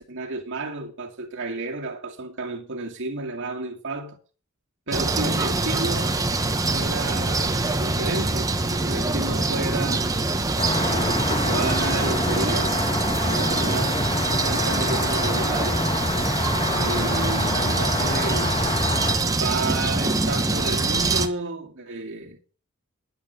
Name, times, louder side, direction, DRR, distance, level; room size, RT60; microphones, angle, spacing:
voice 1, 0.0-4.2 4.9-6.2 6.7-10.1 10.7-12.8 13.2-15.8 16.7-18.6 19.2-22.4, right 2 dB, 55° right, 2.4 m, -31 dB
sound 1, 4.9-21.3, right 2 dB, 15° right, 1.1 m, -24 dB
sound 2, 10.6-19.2, left 2 dB, 25° left, 1.5 m, -28 dB
11.0 x 9.4 x 6.8 m
head